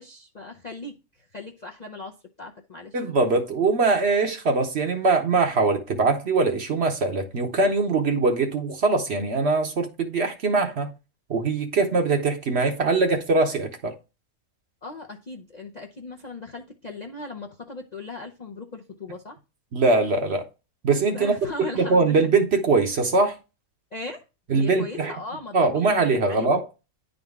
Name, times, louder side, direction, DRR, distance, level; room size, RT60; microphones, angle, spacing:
voice 1, 0.0-3.0 14.8-19.4 21.1-22.3 23.9-24.2 24.5-26.6, left 3 dB, 45° left, 0.5 m, -38 dB
voice 2, 2.9-10.9 11.3-14.0 19.7-20.5 20.8-21.3 21.7-23.3 24.5-25.1 25.5-26.7, right 3 dB, 50° right, 1.1 m, -22 dB
10.0 x 3.9 x 3.5 m
omnidirectional pair, 1.5 m